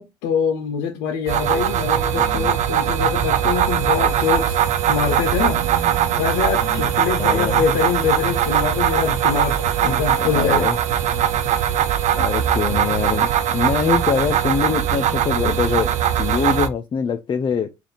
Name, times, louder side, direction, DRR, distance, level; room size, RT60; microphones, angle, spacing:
voice 1, 0.0-4.6 4.9-5.8 6.1-10.7, left 7 dB, 85° left, 0.6 m, -24 dB
sound 1, 1.3-16.7, right 10 dB, 60° right, 0.5 m, -20 dB
voice 2, 2.2-2.5 6.6-6.9 7.2-7.6 9.8-10.8 11.1-11.4 12.1-17.7, left 6 dB, 35° left, 0.4 m, -24 dB
sound 2, 4.9-8.0, right 8 dB, 85° right, 0.9 m, -38 dB
3.4 x 2.5 x 3.9 m
supercardioid pair, 70°, 13 cm